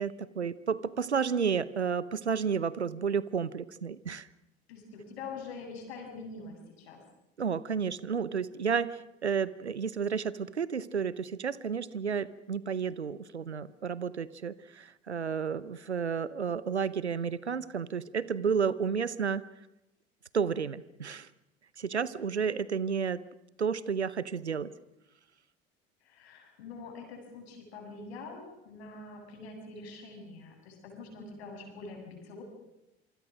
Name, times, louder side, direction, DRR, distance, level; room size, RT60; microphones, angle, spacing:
voice 1, 0.0-4.3 7.4-19.4 20.3-21.3 21.8-23.2 23.6-24.7, right 6 dB, 90° right, 19 dB, 0.8 m, -31 dB
voice 2, 4.7-7.0 26.0-32.4, left 4 dB, 70° left, 3 dB, 7.3 m, -45 dB
27.0 x 24.0 x 6.3 m, 0.91 s
figure-of-eight pair, 65°, 32 cm